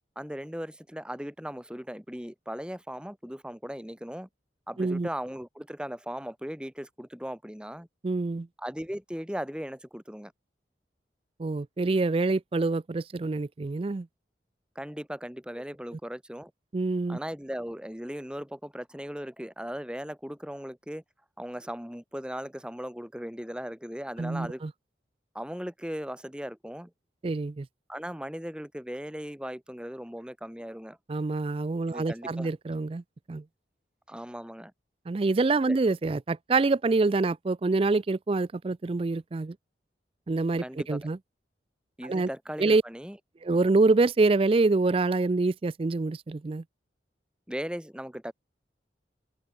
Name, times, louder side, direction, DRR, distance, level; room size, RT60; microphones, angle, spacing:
voice 1, 0.2-4.3 4.7-7.9 8.6-10.3 14.8-16.5 17.1-21.0 21.4-24.6 25.3-26.9 27.9-31.0 31.9-32.5 34.1-34.7 35.7-35.8 40.6-41.1 42.0-43.2 47.5-48.3, equal, 5° right, 2.0 m, -38 dB
voice 2, 4.8-5.1 8.0-8.5 11.4-14.1 16.7-17.2 24.2-24.7 27.2-27.7 31.1-33.0 33.3-33.4 35.1-39.6 40.3-41.2 42.0-42.3 42.6-42.8 43.4-46.6, right 3 dB, 30° right, 0.4 m, -26 dB
head